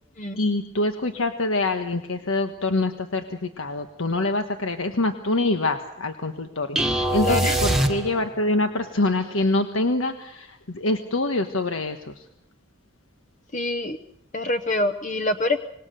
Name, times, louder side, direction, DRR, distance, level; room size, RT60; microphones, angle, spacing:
voice 1, 0.4-12.2, left 2 dB, 85° left, 6 dB, 1.4 m, -25 dB
sound 1, 6.8-8.5, right 1 dB, ahead, 1.6 m, -23 dB
voice 2, 7.2-7.6 13.5-14.0 14.3-15.6, left 2 dB, 40° left, 9 dB, 0.9 m, -25 dB
26.0 x 20.5 x 6.8 m, 0.78 s
head